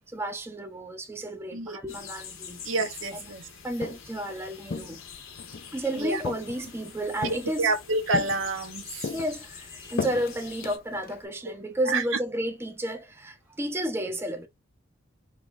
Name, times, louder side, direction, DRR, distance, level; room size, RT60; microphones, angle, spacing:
voice 1, 0.1-2.6 3.1-3.3 3.6-5.0 5.7-7.7 9.1-14.5, right 1 dB, 10° right, 0.6 m, -32 dB
sound 1, 1.9-10.8, left 7 dB, 85° left, 1.1 m, -45 dB
voice 2, 2.6-3.4 5.9-6.2 7.6-9.1 11.5-11.6 11.9-12.0, right 3 dB, 75° right, 0.8 m, -28 dB
Walk footsteps, 3.6-4.2 4.7-5.7 6.2-6.8 7.2-7.8 8.1-8.7 9.0-11.3, left 4 dB, 45° left, 0.5 m, -35 dB
4.9 x 2.3 x 2.5 m
head